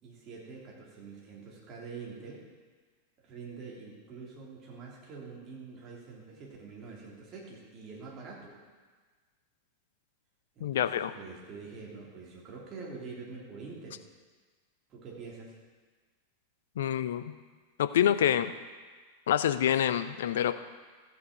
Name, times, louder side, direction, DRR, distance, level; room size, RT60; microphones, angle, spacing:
voice 1, 0.0-2.4 3.2-8.6 10.5-14.0 14.9-15.6, right 4 dB, 30° right, -3 dB, 3.2 m, -45 dB
voice 2, 10.6-11.1 16.8-17.2 17.8-18.5 19.3-20.5, left 10 dB, 60° left, 12 dB, 0.5 m, -26 dB
13.5 x 7.9 x 5.1 m, 1.4 s
figure-of-eight pair, 90°, 0 cm